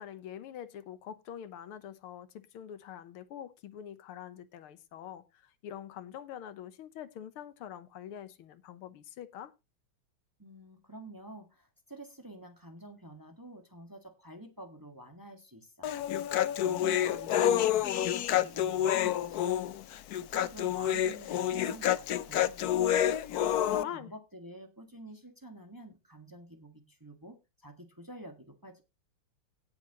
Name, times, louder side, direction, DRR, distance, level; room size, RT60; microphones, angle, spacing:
voice 1, 0.0-9.5 23.8-24.1, left 10 dB, 85° left, 1.8 m, -45 dB
voice 2, 10.4-16.1 16.6-19.8 20.2-28.8, right 1 dB, 10° right, 1.4 m, -49 dB
Human voice, 15.8-23.8, left 11 dB, 70° left, 0.9 m, -28 dB
17.0 x 7.3 x 3.0 m
omnidirectional pair, 2.3 m